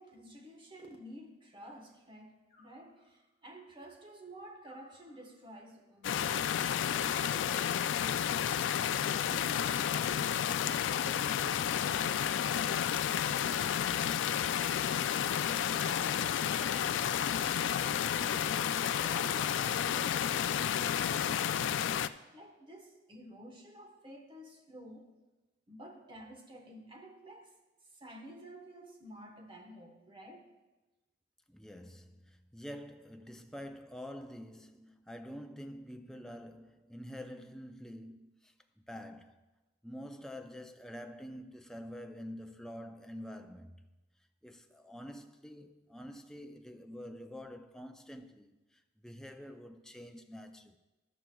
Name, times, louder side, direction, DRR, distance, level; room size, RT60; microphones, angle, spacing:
voice 1, 0.0-8.5 8.7-14.1 14.7-15.1 15.4-25.1 25.7-27.6 27.9-30.5, right 1 dB, 25° right, 1.2 m, -51 dB
Animal, 2.5-3.4 4.6-5.6 7.1-8.2 9.6-10.6 12.3-13.3 14.5-15.6 16.9-17.8 19.2-20.1, left 2 dB, 50° left, 2.4 m, -57 dB
sound 1, 6.0-22.1, left 9 dB, 75° left, 0.3 m, -31 dB
voice 2, 31.5-39.5 39.8-43.8 44.4-50.8, equal, 5° left, 0.4 m, -47 dB
13.5 x 11.5 x 2.3 m
head